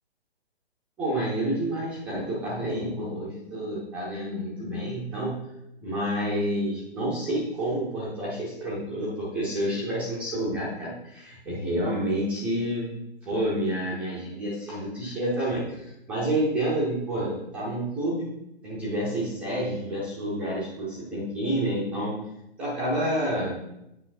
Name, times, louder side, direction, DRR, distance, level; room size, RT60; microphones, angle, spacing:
voice 1, 1.0-5.4 5.8-12.9 13.2-18.3 18.6-22.2 22.6-23.6, right 1 dB, 5° right, -8 dB, 0.5 m, -29 dB
8.5 x 5.5 x 2.5 m, 0.85 s
figure-of-eight pair, 130°, 32 cm